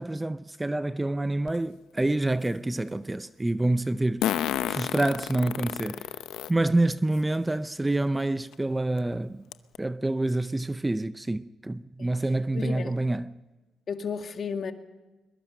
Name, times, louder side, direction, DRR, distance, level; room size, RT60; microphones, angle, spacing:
voice 1, 0.0-4.4 4.7-6.1 6.5-9.4 9.8-13.4, right 2 dB, 15° right, 0.6 m, -27 dB
Fart, 1.5-1.6 4.2-6.5 7.1-7.2 8.5-8.6 9.0-9.1 9.5-9.8, left 11 dB, 85° left, 0.8 m, -30 dB
voice 2, 12.5-12.9 13.9-14.7, left 6 dB, 50° left, 2.0 m, -33 dB
22.0 x 21.5 x 6.6 m
cardioid pair, 90°, 0 cm